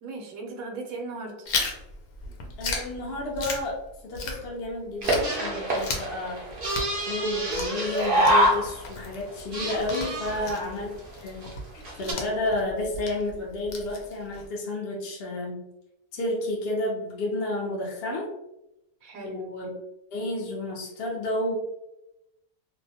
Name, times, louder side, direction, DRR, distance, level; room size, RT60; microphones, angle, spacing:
voice 1, 0.0-1.4 10.3-10.6 19.0-19.5, right 3 dB, 75° right, 2 dB, 1.0 m, -37 dB
Chewing mastication, 1.5-4.7 5.0-14.5, left 3 dB, 85° left, 1.1 m, -36 dB
voice 2, 2.6-6.6 7.1-15.6 16.1-18.3 19.2-19.7 20.1-21.6, left 1 dB, 55° left, -3 dB, 0.7 m, -31 dB
sound 1, 5.0-9.0 9.3-10.6 11.1-11.2 11.4-11.5 11.8-12.1, right 1 dB, 55° right, 0.6 m, -26 dB
2.6 x 2.1 x 2.7 m, 0.87 s
omnidirectional pair, 1.5 m